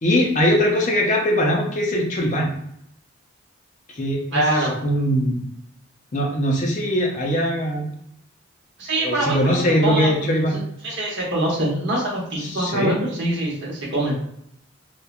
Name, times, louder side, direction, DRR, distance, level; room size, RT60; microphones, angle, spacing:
voice 1, 0.0-2.5 3.9-5.4 6.1-7.9 9.0-10.5 12.4-13.0, equal, 35° left, 0 dB, 0.5 m, -21 dB
voice 2, 4.3-4.7 8.8-10.4 10.8-14.2, right 1 dB, 55° right, -3 dB, 0.9 m, -24 dB
3.0 x 2.2 x 2.4 m, 0.72 s
head